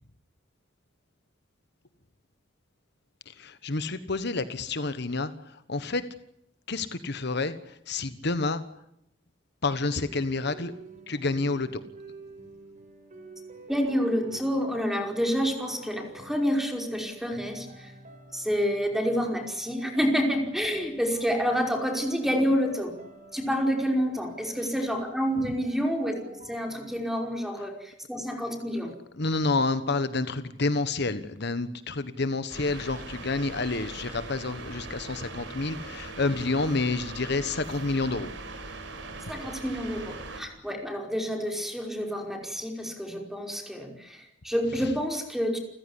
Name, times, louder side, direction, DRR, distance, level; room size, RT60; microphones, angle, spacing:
voice 1, 3.4-5.3 5.7-6.0 6.7-7.6 7.9-8.6 9.6-10.7 11.1-11.8 29.2-38.3, left 3 dB, 65° left, 12 dB, 1.3 m, -29 dB
sound 1, 10.0-27.0, right 2 dB, 45° right, 7.3 m, -49 dB
voice 2, 13.7-17.9 18.3-22.9 23.3-28.9 39.3-45.6, equal, ahead, 3 dB, 5.2 m, -28 dB
sound 2, 32.5-40.4, right 3 dB, 70° right, 5.9 m, -40 dB
30.0 x 15.5 x 10.0 m, 0.80 s
head